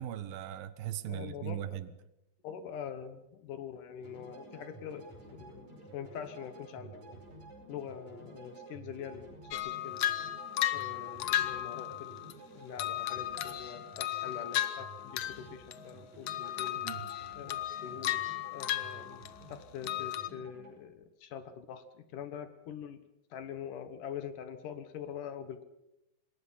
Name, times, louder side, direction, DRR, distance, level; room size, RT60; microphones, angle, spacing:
voice 1, 0.0-1.9 16.8-17.1, right 11 dB, 75° right, 14 dB, 2.7 m, -39 dB
voice 2, 1.1-1.6 2.4-5.1 5.4-5.7 5.9-7.2 7.7-10.0 10.7-16.8 17.4-18.2 18.5-19.2 19.5-21.8 22.1-23.0 23.3-25.6, left 8 dB, 65° left, 11 dB, 2.5 m, -44 dB
sound 1, 4.0-20.7, right 3 dB, 50° right, 6.8 m, -52 dB
sound 2, 9.5-12.3 12.8-15.4 15.7-16.0 16.3-19.5 19.8-20.3, left 12 dB, 90° left, 1.3 m, -35 dB
26.5 x 20.5 x 5.6 m, 0.87 s
omnidirectional pair, 4.2 m